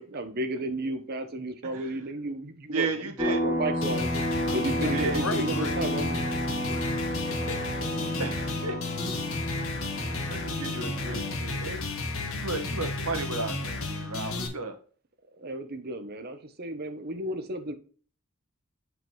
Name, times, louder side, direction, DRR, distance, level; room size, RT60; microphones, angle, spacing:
voice 1, 0.0-4.1 4.5-6.2 15.4-17.7, right 1 dB, 45° right, 0.9 m, -33 dB
voice 2, 2.7-3.4 4.9-5.2 8.2-8.7 10.3-11.8 12.2-14.8, right 3 dB, 80° right, 1.3 m, -33 dB
sound 1, 3.2-11.4, equal, 10° right, 0.9 m, -31 dB
voice 3, 3.7-8.0, left 4 dB, 80° left, 0.9 m, -39 dB
sound 2, 3.8-14.5, left 3 dB, 65° left, 1.4 m, -33 dB
7.2 x 5.0 x 3.0 m
head